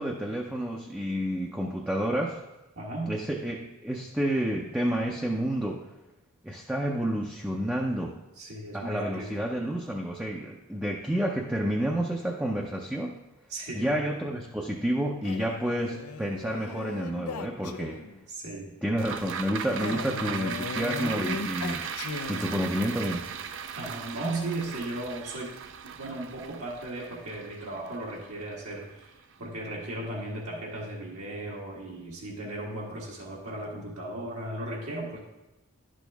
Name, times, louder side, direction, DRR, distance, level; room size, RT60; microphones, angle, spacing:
voice 1, 0.0-2.4 3.1-5.8 6.4-8.2 8.7-13.1 13.7-18.0 18.8-21.9 22.3-23.2, equal, 5° right, -1 dB, 0.5 m, -30 dB
voice 2, 2.7-3.2 8.4-9.3 13.5-14.0 18.3-18.7 23.7-25.6 25.8-35.2, right 1 dB, 75° right, -3 dB, 1.6 m, -36 dB
Male speech man speaking, 15.2-18.2 19.8-22.8, left 4 dB, 90° left, 0.5 m, -37 dB
dumping gravel down sink, 19.0-29.5 29.9-30.0, right 7 dB, 60° right, 0.5 m, -38 dB
10.5 x 6.3 x 3.4 m, 1.0 s
head